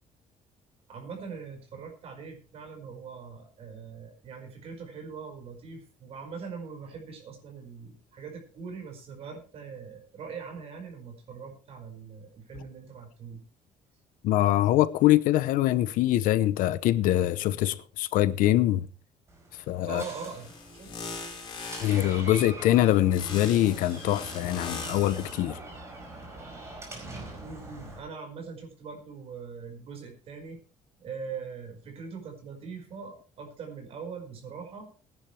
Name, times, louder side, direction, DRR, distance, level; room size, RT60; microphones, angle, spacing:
voice 1, 0.9-13.4 19.9-20.9 27.4-30.6 31.0-34.9, right 5 dB, 45° right, 5.0 m, -42 dB
voice 2, 14.2-18.9 19.7-20.0 21.8-25.6, left 14 dB, 80° left, 0.8 m, -24 dB
Door, 19.3-28.0, right 2 dB, 20° right, 4.9 m, -43 dB
sound 1, 19.9-22.2 23.1-25.4, left 4 dB, 35° left, 4.6 m, -41 dB
20.0 x 11.0 x 3.3 m
cardioid pair, 170°, 14 cm